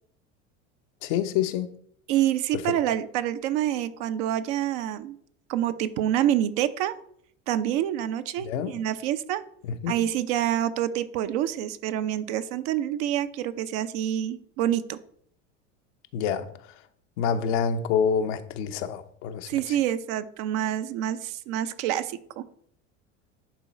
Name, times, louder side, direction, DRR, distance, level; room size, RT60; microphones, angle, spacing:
voice 1, 1.0-1.7 2.5-2.7 8.4-8.8 9.6-9.9 16.1-16.8 17.2-19.8, left 7 dB, 65° left, 0.9 m, -27 dB
voice 2, 2.1-5.2 5.5-7.0 7.5-9.4 9.9-15.0 19.5-22.5, right 11 dB, 65° right, 0.8 m, -27 dB
10.5 x 3.8 x 4.3 m
hypercardioid pair, 80°, 38 cm